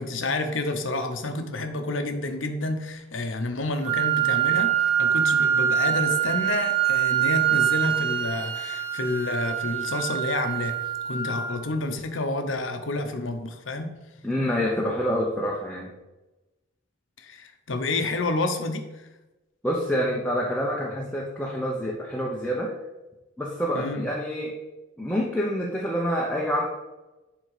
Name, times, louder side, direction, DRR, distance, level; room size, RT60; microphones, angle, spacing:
voice 1, 0.0-4.7 5.0-10.7 11.0-13.9 17.2-18.8 23.7-24.1, left 2 dB, 75° left, 6 dB, 1.0 m, -29 dB
Wind instrument woodwind instrument, 3.8-11.8, right 10 dB, 75° right, 1.8 m, -24 dB
voice 2, 14.2-15.9 19.6-22.7 23.4-24.5 25.0-26.7, equal, 5° left, -3 dB, 0.9 m, -27 dB
11.0 x 3.8 x 5.0 m, 1.1 s
head